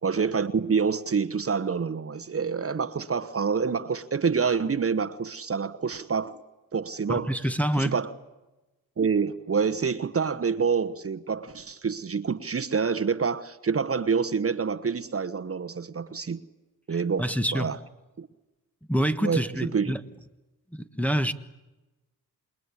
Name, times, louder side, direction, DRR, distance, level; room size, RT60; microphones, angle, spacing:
voice 1, 0.0-6.4 6.7-7.3 7.8-8.1 9.0-16.4 16.9-17.3 17.5-17.8 18.2-18.3 19.2-19.9, right 5 dB, 40° right, 1.1 m, -27 dB
voice 2, 7.1-7.9 17.2-17.7 18.9-20.0 20.7-21.3, equal, 5° left, 1.4 m, -26 dB
28.0 x 21.0 x 9.8 m
cardioid pair, 90°, 37 cm